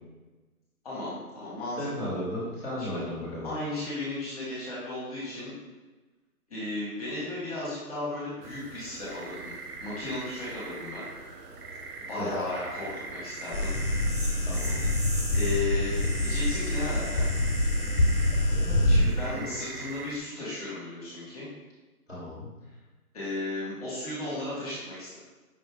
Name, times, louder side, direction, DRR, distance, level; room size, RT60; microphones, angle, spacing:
voice 1, 0.8-2.1 2.8-3.0 3.4-5.5 6.5-9.4 9.8-11.1 12.1-13.7 14.4-14.5 15.3-17.3 18.8-21.5 23.1-25.2, left 2 dB, 25° left, -9 dB, 1.3 m, -35 dB
voice 2, 1.8-3.5 12.2-12.4 14.4-14.9 18.5-19.5 22.1-22.5, equal, 10° right, -17 dB, 1.2 m, -36 dB
sound 1, 8.4-20.2, right 3 dB, 85° right, 0.9 m, -42 dB
sound 2, 13.4-19.2, right 1 dB, 35° right, 0.6 m, -41 dB
sound 3, 13.5-19.0, left 1 dB, 50° left, 0.8 m, -26 dB
5.3 x 2.7 x 3.4 m, 1.2 s
hypercardioid pair, 160°, 46 cm